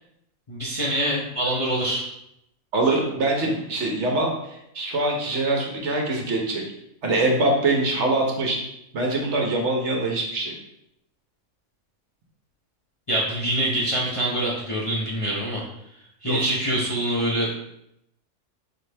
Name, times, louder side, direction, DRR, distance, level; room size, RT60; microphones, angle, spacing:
voice 1, 0.5-2.1 13.1-15.6 16.2-17.5, right 1 dB, 35° left, -5 dB, 0.5 m, -25 dB
voice 2, 2.7-6.6 7.0-8.6 8.9-10.5 16.2-16.5, right 2 dB, 60° right, 0 dB, 1.0 m, -24 dB
4.1 x 3.2 x 3.3 m, 0.80 s
omnidirectional pair, 1.5 m